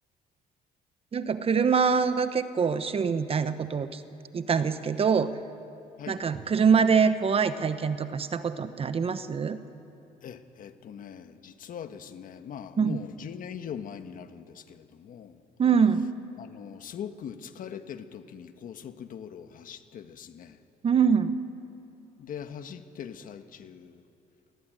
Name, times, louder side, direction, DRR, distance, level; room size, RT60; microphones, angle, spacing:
voice 1, 1.1-4.0 4.3-5.4 6.1-9.6 12.8-13.0 15.6-16.1 20.8-21.4, right 6 dB, 35° right, 12 dB, 1.1 m, -24 dB
voice 2, 10.2-15.4 16.4-20.6 22.2-24.0, left 8 dB, 55° left, 9 dB, 1.4 m, -41 dB
21.5 x 18.0 x 9.0 m, 3.0 s
cardioid pair, 110°, 17 cm